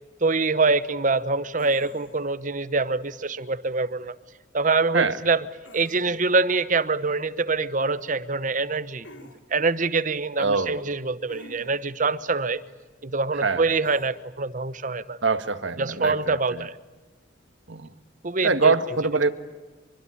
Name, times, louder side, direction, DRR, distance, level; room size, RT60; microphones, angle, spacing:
voice 1, 0.2-4.1 4.5-5.4 5.7-12.6 13.0-15.2 15.8-16.7 18.2-18.7, right 3 dB, 45° right, 14 dB, 1.0 m, -25 dB
sound 1, 1.6-2.3 5.6-6.4 9.0-9.4 11.3-11.9 13.8-14.1, left 1 dB, 80° left, 3.2 m, -48 dB
voice 2, 10.4-10.8 13.3-13.6 15.2-16.7 17.7-17.9 18.4-19.3, right 4 dB, 80° right, 10 dB, 1.6 m, -24 dB
24.5 x 24.5 x 9.8 m, 1.2 s
head